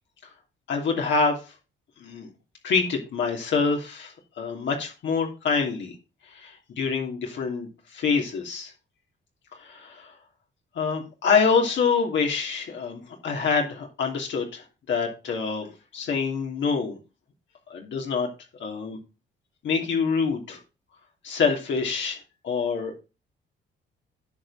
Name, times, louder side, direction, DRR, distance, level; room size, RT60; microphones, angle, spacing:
voice 1, 0.7-1.4 2.0-2.3 2.6-5.9 6.3-8.7 9.6-10.1 10.7-15.7 15.9-17.0 17.7-18.3 18.6-19.0 19.6-20.6 21.2-22.2 22.4-23.0, left 5 dB, 65° left, 1 dB, 2.9 m, -26 dB
10.5 x 5.5 x 4.0 m, 0.30 s
cardioid pair, 90°, 20 cm